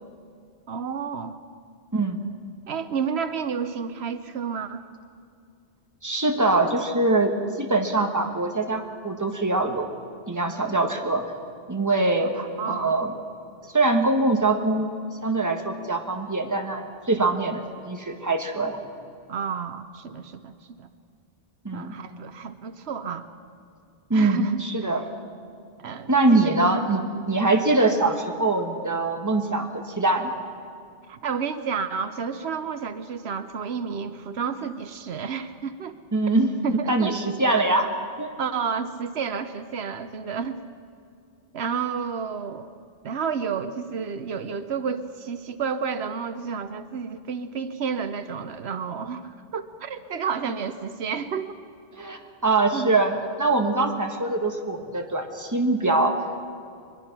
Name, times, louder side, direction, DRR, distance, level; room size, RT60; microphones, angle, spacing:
voice 1, 0.7-1.4 2.7-4.8 12.3-13.0 17.2-17.3 19.3-20.9 21.7-23.3 24.1-24.9 25.8-26.6 31.1-36.0 36.6-37.1 38.4-40.6 41.5-42.7 43.0-51.6 52.7-52.9, right 6 dB, 80° right, 10 dB, 1.1 m, -31 dB
voice 2, 1.9-2.2 6.0-9.9 10.3-11.2 11.7-13.1 13.7-14.9 15.2-18.8 21.6-21.9 24.1-25.0 26.1-30.3 36.1-36.5 36.9-37.9 38.2-38.3 51.9-56.2, right 2 dB, 15° right, 4 dB, 1.4 m, -23 dB
22.5 x 21.5 x 6.0 m, 2.3 s
omnidirectional pair, 1.1 m